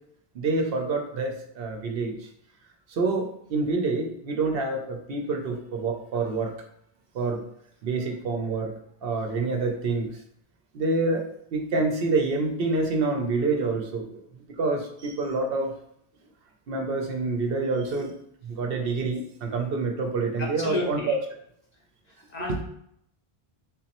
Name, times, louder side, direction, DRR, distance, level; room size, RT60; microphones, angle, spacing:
voice 1, 0.3-2.3 2.9-6.5 7.1-7.4 7.8-8.7 9.0-10.1 10.7-14.2 14.6-15.7 16.7-18.1 18.4-21.2 22.5-22.6, right 3 dB, 65° right, 3 dB, 0.7 m, -27 dB
voice 2, 20.4-21.2 22.1-22.6, left 2 dB, 45° left, -1 dB, 0.7 m, -32 dB
3.6 x 3.0 x 2.9 m, 0.70 s
omnidirectional pair, 1.1 m